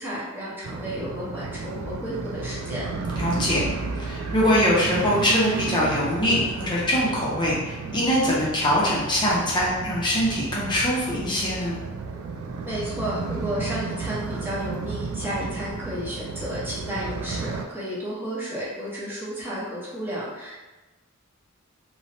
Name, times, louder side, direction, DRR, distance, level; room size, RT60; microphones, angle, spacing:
voice 1, 0.0-2.9 12.6-20.6, equal, 10° right, -8 dB, 0.8 m, -32 dB
sound 1, 0.6-17.7, right 4 dB, 80° right, 0.3 m, -33 dB
voice 2, 3.1-3.6 4.0-11.8, equal, 20° left, -6 dB, 0.6 m, -23 dB
3.0 x 2.1 x 2.6 m, 1.1 s
head